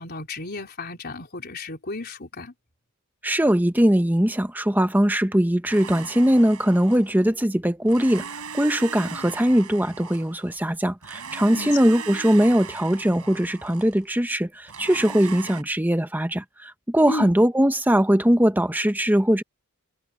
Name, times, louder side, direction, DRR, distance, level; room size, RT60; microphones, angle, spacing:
voice 1, 0.0-2.5 11.5-11.8 17.1-17.3, left 3 dB, 45° left, 4.1 m, -33 dB
voice 2, 3.2-8.3 8.5-19.4, equal, 10° right, 1.1 m, -21 dB
Domestic sounds home sounds, 5.7-7.3 7.9-10.6 11.0-14.0 14.7-15.6, right 6 dB, 85° right, 5.6 m, -38 dB
head